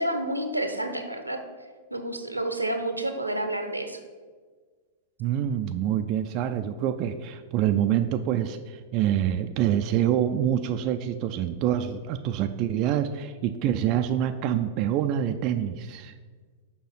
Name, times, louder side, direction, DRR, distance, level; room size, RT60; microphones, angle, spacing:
voice 1, 0.0-1.4 1.9-4.0, right 1 dB, 85° right, 7 dB, 0.8 m, -29 dB
voice 2, 5.2-16.1, right 10 dB, 40° right, 7 dB, 0.4 m, -26 dB
6.4 x 5.4 x 5.7 m, 1.5 s
figure-of-eight pair, 95°, 0 cm